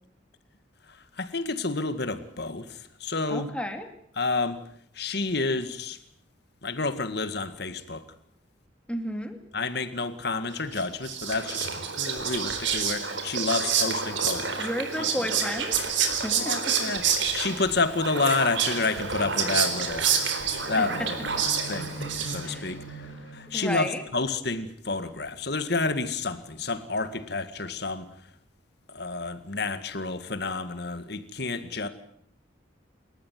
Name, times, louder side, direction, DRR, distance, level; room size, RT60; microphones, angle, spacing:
voice 1, 0.9-3.5 4.2-4.6 4.9-6.0 6.6-8.0 9.5-14.7 15.0-15.1 16.3-20.1 20.7-21.2 21.7-22.0 22.3-28.1 28.9-31.9, left 3 dB, 55° left, 11 dB, 2.0 m, -30 dB
voice 2, 3.3-3.9 8.9-9.4 14.6-16.7 20.8-21.1 22.4-22.7 23.5-24.0, left 1 dB, 5° left, 6 dB, 2.6 m, -33 dB
Whispering, 10.7-22.7, right 6 dB, 75° right, 4.0 m, -28 dB
sound 1, 16.0-23.7, equal, 80° left, 2.8 m, -44 dB
28.5 x 14.0 x 9.4 m, 0.69 s
head